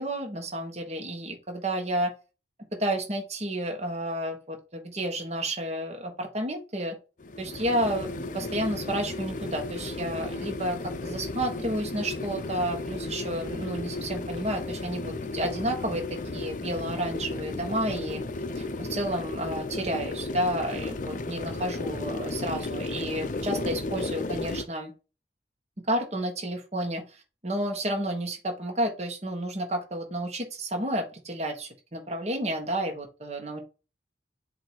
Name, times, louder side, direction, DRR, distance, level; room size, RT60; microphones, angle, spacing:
voice 1, 0.0-2.1 2.7-7.0 7.4-16.0 16.3-18.2 18.5-24.9 25.9-27.0 27.4-33.6, right 1 dB, 35° right, 2 dB, 1.4 m, -31 dB
sound 1, 7.2-24.7, left 2 dB, 45° left, 0.5 m, -34 dB
7.6 x 2.7 x 4.7 m, 0.31 s
head